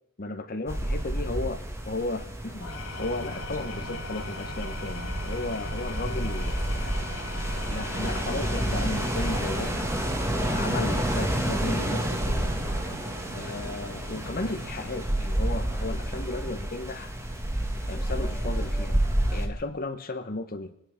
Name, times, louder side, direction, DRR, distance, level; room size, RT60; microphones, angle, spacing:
voice 1, 0.2-1.6 1.9-7.1 7.7-9.7 10.4-12.6 13.3-17.1 17.9-19.0 19.3-20.7, left 2 dB, 40° left, 8 dB, 1.0 m, -35 dB
sound 1, 0.7-19.5, right 1 dB, 15° right, 1.5 m, -30 dB
Engine / Tools, 2.5-10.8, left 3 dB, 85° left, 2.5 m, -40 dB
sound 2, 2.9-15.2, right 1 dB, 45° right, 5.5 m, -44 dB
25.5 x 10.0 x 5.0 m, 0.79 s
head